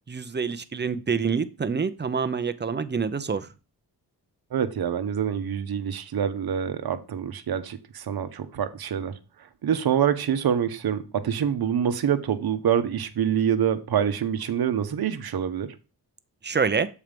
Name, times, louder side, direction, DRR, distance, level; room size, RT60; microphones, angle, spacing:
voice 1, 0.1-3.5 16.4-16.9, right 5 dB, 25° right, 11 dB, 0.8 m, -26 dB
voice 2, 4.5-9.1 9.4-15.7, right 8 dB, 65° right, 9 dB, 1.1 m, -26 dB
7.3 x 4.7 x 5.2 m, 0.32 s
cardioid pair, 85°, 39 cm